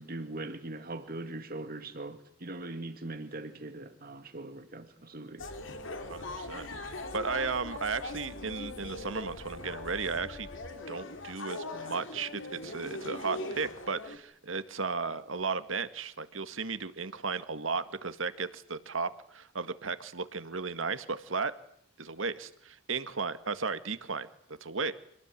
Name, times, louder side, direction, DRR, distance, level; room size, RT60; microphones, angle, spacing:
voice 1, 0.0-5.5, right 2 dB, 50° right, 2.3 m, -41 dB
sound 1, 5.4-14.2, left 2 dB, 70° left, 3.3 m, -41 dB
voice 2, 6.1-6.7 7.1-10.5 10.9-21.5 22.0-24.9, right 4 dB, 80° right, 1.9 m, -35 dB
27.0 x 19.5 x 9.7 m
head